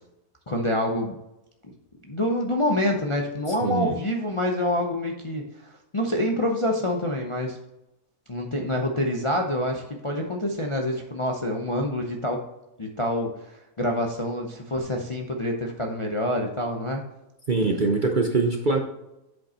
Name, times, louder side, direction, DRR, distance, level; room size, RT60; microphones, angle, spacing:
voice 1, 0.5-1.2 2.1-7.6 8.3-12.4 12.8-17.0, left 1 dB, 35° left, 1 dB, 0.5 m, -27 dB
voice 2, 3.6-4.0 17.5-18.8, right 3 dB, 45° right, 3 dB, 0.7 m, -23 dB
7.8 x 5.3 x 4.2 m, 0.91 s
omnidirectional pair, 1.6 m